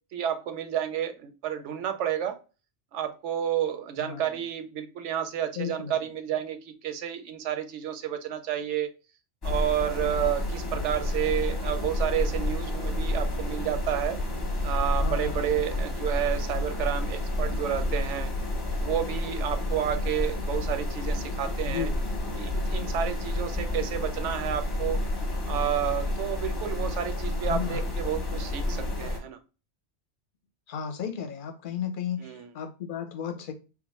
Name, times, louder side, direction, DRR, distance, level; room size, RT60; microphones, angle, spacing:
voice 1, 0.1-2.4 2.9-8.9 9.4-14.2 14.6-18.3 18.8-21.9 22.3-25.0 25.5-29.4 32.2-32.5, right 10 dB, 85° right, 0.9 m, -30 dB
voice 2, 4.0-4.4 5.6-6.1 15.0-15.5 21.6-22.0 27.5-27.9 30.7-33.5, left 8 dB, 55° left, 0.7 m, -34 dB
sound 1, 9.4-29.2, left 1 dB, 25° left, 0.8 m, -30 dB
3.5 x 2.5 x 3.0 m
omnidirectional pair, 1.2 m